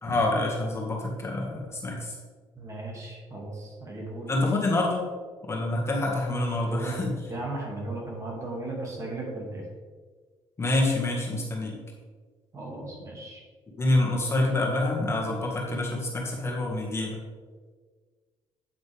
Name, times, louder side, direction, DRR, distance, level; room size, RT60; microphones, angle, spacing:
voice 1, 0.0-2.2 4.3-5.0 5.5-7.2 10.6-11.7 13.8-17.2, left 2 dB, 25° left, -2 dB, 1.8 m, -27 dB
voice 2, 2.6-4.3 6.6-7.0 7.3-9.6 12.5-13.4, right 2 dB, 30° right, -1 dB, 2.4 m, -36 dB
8.8 x 8.0 x 3.5 m, 1.5 s
cardioid pair, 120°, 10 cm